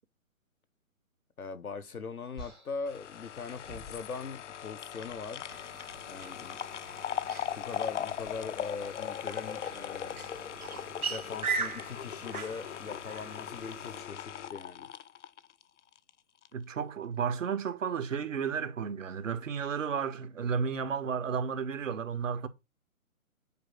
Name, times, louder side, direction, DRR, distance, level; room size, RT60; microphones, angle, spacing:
voice 1, 1.4-5.4 6.1-6.6 7.6-10.2 11.1-14.9, left 5 dB, 80° left, 1.4 m, -41 dB
sound 1, 2.4-4.6 4.9-5.3 6.4-6.7 8.0-8.3, equal, ahead, 0.4 m, -52 dB
sound 2, 2.9-16.1 16.4-16.5, left 9 dB, 55° left, 0.8 m, -39 dB
sound 3, 5.5-14.0, right 5 dB, 80° right, 2.1 m, -40 dB
voice 2, 16.5-22.5, right 6 dB, 60° right, 1.7 m, -33 dB
9.3 x 5.0 x 6.5 m
figure-of-eight pair, 135°, 43 cm